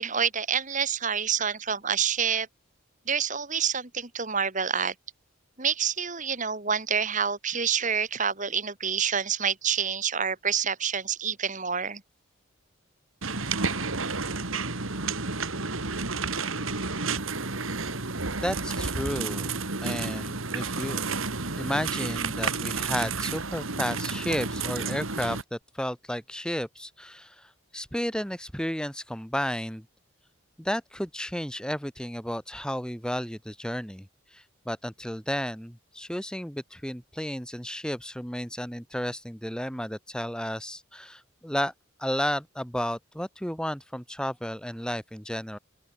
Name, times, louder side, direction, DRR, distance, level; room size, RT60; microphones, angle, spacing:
voice 1, 0.0-2.5 3.1-4.9 5.6-12.0, right 7 dB, 35° right, 2.6 m, -27 dB
sound 1, 13.2-25.4, right 4 dB, 70° right, 2.9 m, -31 dB
voice 2, 18.4-19.5 19.8-21.0 21.6-29.8 30.6-34.1 34.3-41.7 42.0-45.6, equal, 5° left, 2.9 m, -32 dB
open air
head